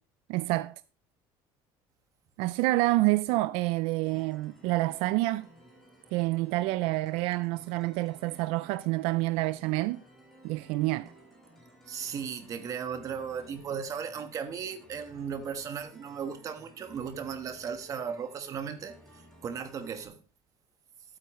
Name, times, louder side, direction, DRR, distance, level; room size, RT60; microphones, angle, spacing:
voice 1, 0.3-0.7 2.4-5.5 6.1-10.0 10.4-11.1, right 19 dB, 75° right, 0.4 m, -28 dB
sound 1, 4.1-20.1, right 1 dB, 5° left, 4.6 m, -56 dB
voice 2, 11.9-20.2, right 7 dB, 35° right, 1.2 m, -36 dB
12.5 x 8.8 x 3.1 m
cardioid pair, 155°, 10 cm